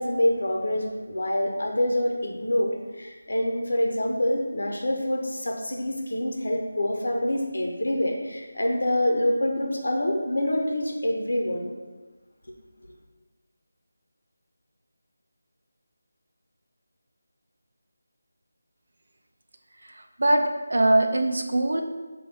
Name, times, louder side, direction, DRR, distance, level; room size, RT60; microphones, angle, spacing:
voice 1, 0.0-11.7, left 1 dB, 75° left, 1 dB, 0.6 m, -26 dB
voice 2, 19.8-20.4 20.7-21.8, right 1 dB, 60° right, 4 dB, 0.4 m, -22 dB
5.2 x 2.2 x 3.4 m, 1.2 s
figure-of-eight pair, 180°, 0 cm